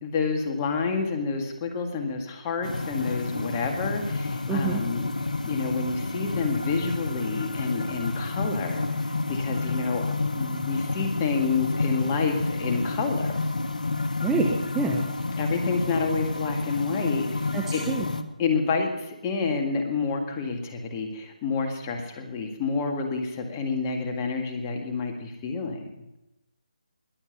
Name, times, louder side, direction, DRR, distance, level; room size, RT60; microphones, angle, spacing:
voice 1, 0.0-5.1 5.4-13.3 15.4-17.8 18.4-25.8, left 4 dB, 20° left, 4 dB, 1.8 m, -29 dB
sound 1, 2.6-18.2, left 3 dB, 80° left, 1.2 m, -30 dB
voice 2, 4.5-4.8 14.2-15.1 17.5-18.1, right 4 dB, 5° right, 0 dB, 0.9 m, -27 dB
21.0 x 7.3 x 6.7 m, 0.93 s
figure-of-eight pair, 155°, 4 cm